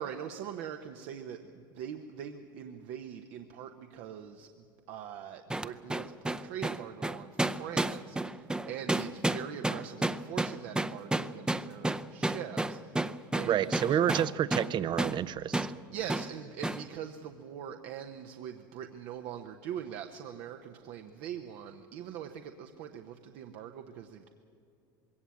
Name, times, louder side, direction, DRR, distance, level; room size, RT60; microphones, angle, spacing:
voice 1, 0.0-14.0 15.9-24.3, right 9 dB, 60° right, 1.0 m, -42 dB
sound 1, 5.5-14.7 15.0-15.2 15.5-15.7 16.1-16.3 16.6-16.8, right 2 dB, 5° right, 0.7 m, -31 dB
voice 2, 13.4-15.7, right 10 dB, 40° right, 0.7 m, -29 dB
21.5 x 17.0 x 8.5 m
hypercardioid pair, 80°, 11 cm